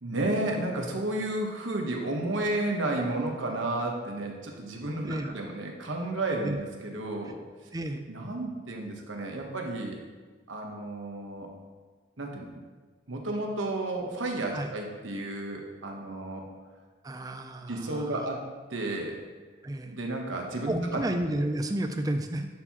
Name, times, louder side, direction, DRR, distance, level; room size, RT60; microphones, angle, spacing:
voice 1, 0.0-7.4 8.1-10.0 10.5-11.5 12.2-12.5 13.1-16.4 17.7-18.4 18.7-19.2 19.9-21.0, right 2 dB, 80° right, 1 dB, 1.1 m, -32 dB
voice 2, 7.7-8.0 14.5-14.7 17.0-18.3 19.6-19.9 20.7-22.5, right 1 dB, 20° right, 7 dB, 0.4 m, -32 dB
11.0 x 4.5 x 3.0 m, 1.4 s
head